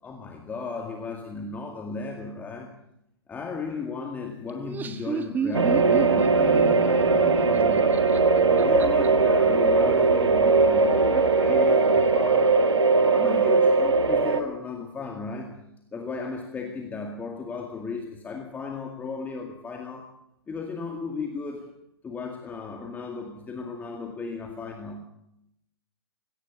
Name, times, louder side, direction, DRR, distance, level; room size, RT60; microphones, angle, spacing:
voice 1, 0.0-2.7 3.3-8.0 8.5-12.6 13.0-15.6 15.9-20.1 20.5-21.8 22.0-25.0, left 4 dB, 10° left, 3 dB, 2.1 m, -35 dB
Laughter, 4.5-9.1, right 6 dB, 15° right, 1.5 m, -32 dB
sound 1, 5.5-14.4, right 4 dB, 90° right, 2.0 m, -20 dB
20.0 x 17.5 x 8.3 m, 0.81 s
hypercardioid pair, 135°, 14 cm